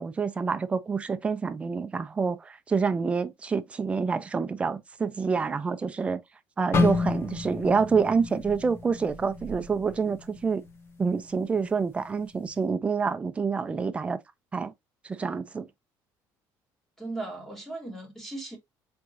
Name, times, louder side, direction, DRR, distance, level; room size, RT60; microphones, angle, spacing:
voice 1, 0.0-6.2 6.6-10.6 11.0-14.2 14.5-14.7 15.0-15.7, right 5 dB, 15° right, 0.4 m, -27 dB
sound 1, 6.7-10.8 11.1-11.4 12.0-12.4, left 4 dB, 30° left, 1.0 m, -30 dB
voice 2, 17.0-18.6, right 2 dB, 5° left, 1.7 m, -37 dB
4.6 x 3.6 x 2.6 m
cardioid pair, 165°, 8 cm